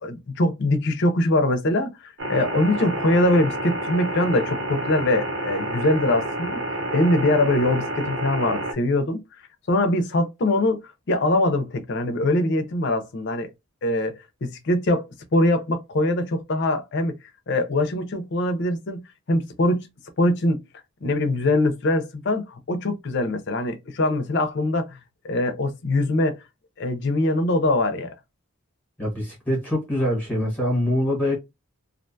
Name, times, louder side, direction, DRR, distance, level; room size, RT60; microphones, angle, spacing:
voice 1, 0.0-6.6 6.9-9.2 9.7-10.8 11.1-13.5 13.8-15.0 15.3-17.1 17.5-19.0 19.3-19.8 20.2-20.6 21.0-25.0 25.2-26.4 26.8-28.1, left 1 dB, 50° left, 0.5 m, -22 dB
sound 1, 2.2-8.7, right 1 dB, 55° right, 0.6 m, -29 dB
voice 2, 29.0-31.4, left 1 dB, 5° left, 1.0 m, -24 dB
2.5 x 2.2 x 2.6 m
head